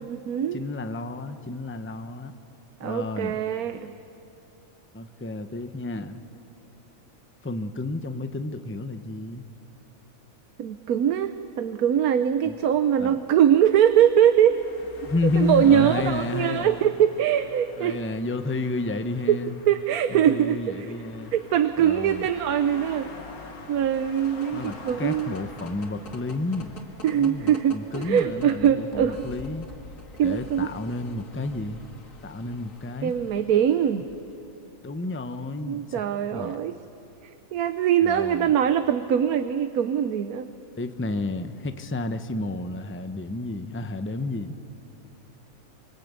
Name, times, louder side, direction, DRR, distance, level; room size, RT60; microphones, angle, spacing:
voice 1, 0.0-0.6 2.8-3.9 10.6-14.6 15.4-18.0 19.3-19.4 19.7-20.9 21.3-23.1 23.7-25.3 27.0-29.2 30.2-30.7 33.0-34.1 35.6-36.8 37.5-40.5, right 9 dB, 85° right, 10 dB, 1.3 m, -22 dB
voice 2, 0.5-2.3 2.8-3.4 4.9-6.2 7.4-9.4 12.4-12.6 13.0-13.2 15.0-16.9 17.8-19.5 20.1-21.3 21.8-22.3 24.5-26.7 27.1-29.7 30.2-31.8 32.2-33.1 34.8-36.0 36.3-36.6 38.0-38.5 40.8-44.6, left 2 dB, 10° left, 8 dB, 0.8 m, -31 dB
sound 1, 12.5-27.9, left 3 dB, 90° left, 2.4 m, -46 dB
sound 2, 23.9-34.6, left 3 dB, 65° left, 2.2 m, -46 dB
25.5 x 25.5 x 8.3 m, 2.9 s
omnidirectional pair, 1.5 m